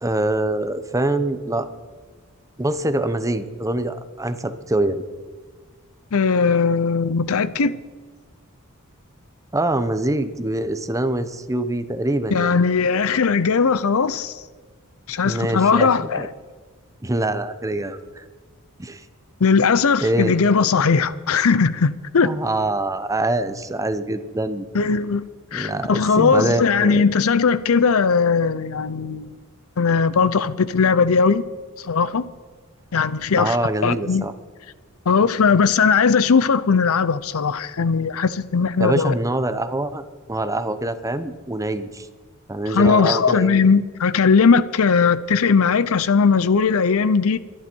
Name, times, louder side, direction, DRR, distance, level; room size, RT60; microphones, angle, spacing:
voice 1, 0.0-1.7 2.6-5.0 9.5-12.6 15.2-16.3 17.0-18.2 18.8-19.0 20.0-20.3 22.2-24.7 25.5-27.1 33.4-34.3 38.8-40.0 40.3-42.1 42.5-43.6, right 1 dB, 15° right, 0.8 m, -24 dB
voice 2, 6.1-7.7 12.3-14.4 15.1-16.3 19.4-22.3 24.7-25.2 25.5-29.4 29.8-31.4 31.8-32.3 32.9-33.6 33.8-34.3 35.1-39.1 42.7-47.4, left 5 dB, 70° left, 0.6 m, -18 dB
24.5 x 11.0 x 4.6 m
head